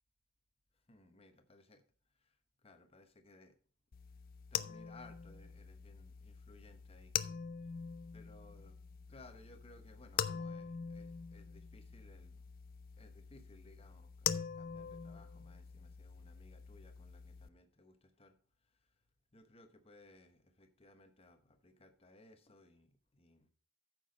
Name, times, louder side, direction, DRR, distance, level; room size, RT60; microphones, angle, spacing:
voice 1, 0.7-1.8 2.1-3.6 4.5-7.2 8.1-8.8 9.1-12.5 13.0-19.0 19.3-23.5, left 2 dB, 30° left, 8 dB, 1.1 m, -61 dB
sound 1, 3.9-17.5, left 8 dB, 45° left, 0.4 m, -43 dB
9.2 x 6.2 x 5.2 m, 0.43 s
head